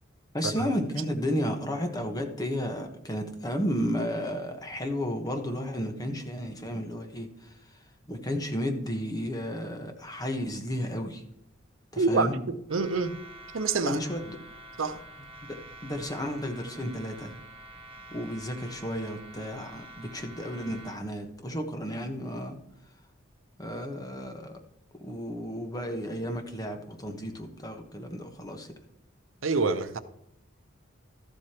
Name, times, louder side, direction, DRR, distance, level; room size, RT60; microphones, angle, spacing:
voice 1, 0.3-11.2 11.9-12.4 13.8-14.4 15.4-17.3 18.1-22.6 23.6-24.6 25.0-28.7, equal, 20° left, 1.2 m, -33 dB
voice 2, 12.0-12.3 12.7-13.2 13.5-14.0 14.8-15.0 29.4-30.0, right 4 dB, 80° right, 0.7 m, -26 dB
sound 1, 12.7-21.0, right 1 dB, 30° right, 1.0 m, -47 dB
13.5 x 8.0 x 2.9 m
head